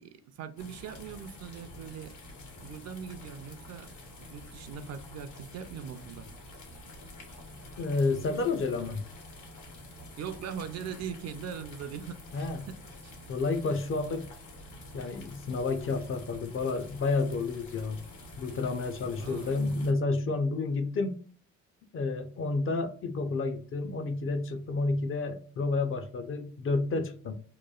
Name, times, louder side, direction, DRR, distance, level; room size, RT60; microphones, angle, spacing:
voice 1, 0.0-2.2 2.6-3.9 4.2-6.3 10.2-13.2 19.2-19.6, right 7 dB, 60° right, 0.5 m, -41 dB
sound 1, 0.6-19.9, left 1 dB, 75° left, 1.1 m, -48 dB
voice 2, 7.8-9.0 12.3-12.7 13.3-14.3 14.9-18.0 18.4-21.2 21.9-27.3, left 3 dB, 45° left, 0.5 m, -30 dB
3.0 x 2.2 x 2.3 m
cardioid pair, 90°, 30 cm